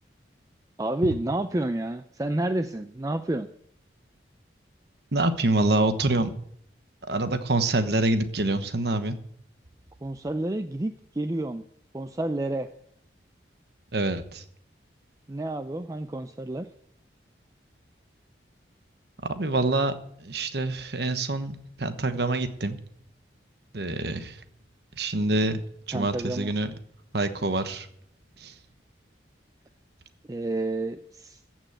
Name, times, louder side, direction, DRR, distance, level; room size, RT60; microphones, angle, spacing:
voice 1, 0.8-3.5 10.0-11.6 11.9-12.7 15.3-16.7 25.9-26.5 30.3-31.4, right 1 dB, 20° right, 9 dB, 0.4 m, -29 dB
voice 2, 5.1-6.3 7.1-9.2 13.9-14.4 19.2-19.9 20.2-22.8 23.7-24.4 25.0-25.6 25.9-26.7 27.1-27.9 28.4-28.5, right 2 dB, 65° right, 10 dB, 1.2 m, -26 dB
14.5 x 6.2 x 7.9 m, 0.68 s
head